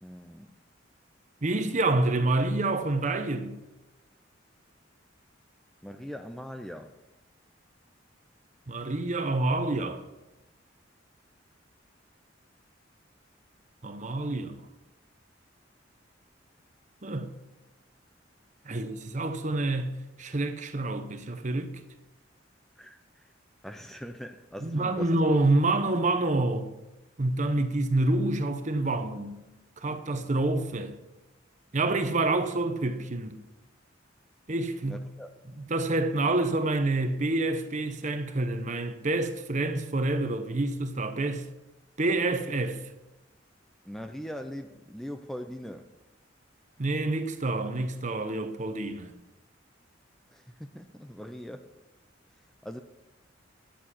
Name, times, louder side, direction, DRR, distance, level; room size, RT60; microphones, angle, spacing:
voice 1, 0.0-0.5 5.8-6.9 22.8-23.3 23.6-25.1 34.8-35.3 43.8-45.9 50.3-51.8 52.6-52.8, equal, ahead, 0.4 m, -41 dB
voice 2, 1.4-3.6 8.7-10.0 13.8-14.6 17.0-17.3 18.6-21.7 24.6-26.7 27.2-29.4 29.8-31.0 31.7-33.3 34.5-35.0 35.6-41.4 42.0-42.8 46.8-49.1, right 2 dB, 40° right, 0.9 m, -27 dB
10.0 x 7.4 x 5.8 m
head